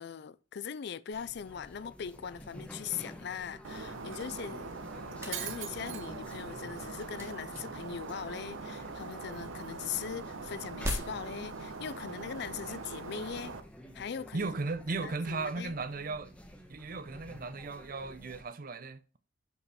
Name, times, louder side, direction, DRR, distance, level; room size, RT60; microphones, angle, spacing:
voice 1, 0.0-4.7 5.2-13.6 13.9-14.5 14.9-15.8, left 7 dB, 60° left, 0.4 m, -40 dB
sound 1, 1.1-18.4, equal, 5° left, 1.1 m, -51 dB
Shatter, 3.6-13.6, right 4 dB, 85° right, 0.9 m, -42 dB
sound 2, 4.7-17.5, equal, 15° right, 1.7 m, -47 dB
voice 2, 14.3-16.3 16.7-19.2, right 3 dB, 45° right, 0.6 m, -36 dB
6.6 x 5.5 x 4.2 m
head